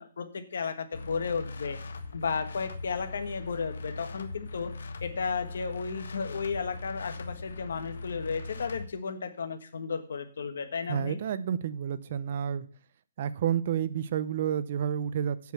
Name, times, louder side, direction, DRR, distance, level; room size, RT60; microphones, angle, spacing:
voice 1, 0.0-1.8 2.1-4.7 5.0-11.2, left 5 dB, 65° left, 7 dB, 1.4 m, -33 dB
sound 1, 0.9-8.9, left 3 dB, 80° left, 1.4 m, -40 dB
voice 2, 10.9-12.7 13.2-15.5, right 9 dB, 35° right, 15 dB, 0.6 m, -30 dB
8.3 x 6.3 x 7.0 m, 0.41 s
hypercardioid pair, 175°, 0 cm